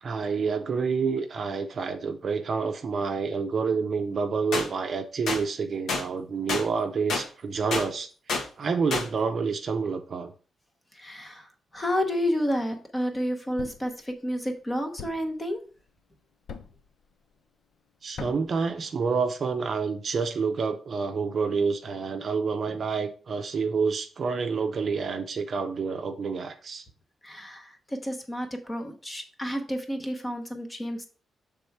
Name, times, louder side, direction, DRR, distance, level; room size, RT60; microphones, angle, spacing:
voice 1, 0.0-8.1 8.6-10.3 18.0-26.8, right 5 dB, 45° right, 7 dB, 0.6 m, -28 dB
sound 1, 4.5-4.7 5.3-5.4 5.9-6.0 6.5-6.6 7.1-7.2 7.7-7.9 8.3-8.4 8.9-9.1, left 3 dB, 85° left, 1.2 m, -27 dB
voice 2, 10.9-15.6 27.2-31.1, equal, 15° left, 5 dB, 0.9 m, -30 dB
Thump thud, 13.6-14.0 15.0-15.4 16.5-16.9 18.2-18.6, left 6 dB, 60° left, 0.5 m, -40 dB
6.8 x 3.6 x 4.6 m, 0.40 s
wide cardioid pair, 165°, 0 cm